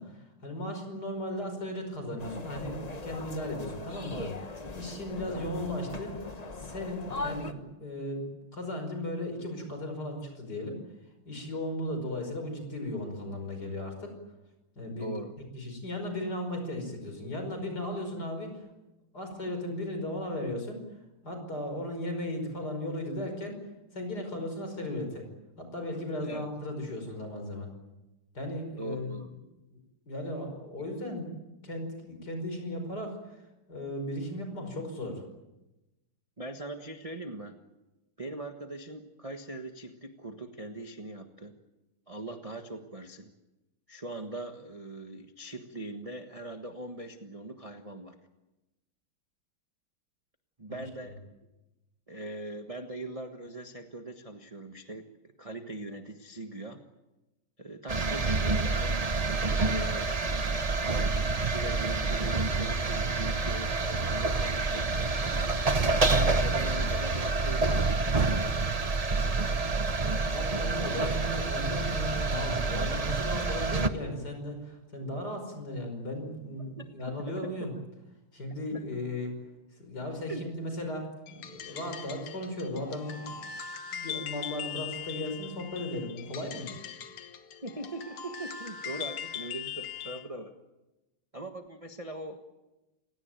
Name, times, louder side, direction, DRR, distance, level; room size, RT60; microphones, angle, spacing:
voice 1, 0.0-6.2 6.5-8.2 8.5-10.8 11.2-14.2 14.8-15.2 15.5-18.7 19.1-20.8 21.2-23.6 23.9-25.3 25.6-27.7 28.3-29.3 29.7-29.8 30.1-33.4 33.7-35.2 51.0-51.1 70.2-77.7 78.3-79.3 79.7-83.4 83.9-86.7, left 1 dB, 45° left, 5 dB, 5.8 m, -36 dB
sound 1, 2.2-7.5, left 2 dB, 25° left, 0.9 m, -40 dB
voice 2, 15.0-15.3 26.2-26.5 28.8-29.3 36.4-37.6 38.2-41.5 42.1-43.3 43.9-48.2 50.6-51.2 52.1-55.1 55.4-56.8 57.6-59.0 59.5-60.5 60.8-65.5 65.8-68.2 76.8-77.7 78.7-78.8 80.3-80.5 87.6-90.5 91.3-92.4, right 2 dB, 20° right, 5 dB, 1.2 m, -41 dB
sound 2, 57.9-73.9, right 3 dB, 50° right, 0.4 m, -28 dB
sound 3, 81.3-90.3, left 8 dB, 80° left, 2.2 m, -41 dB
29.0 x 17.5 x 9.2 m, 1.0 s
omnidirectional pair, 2.4 m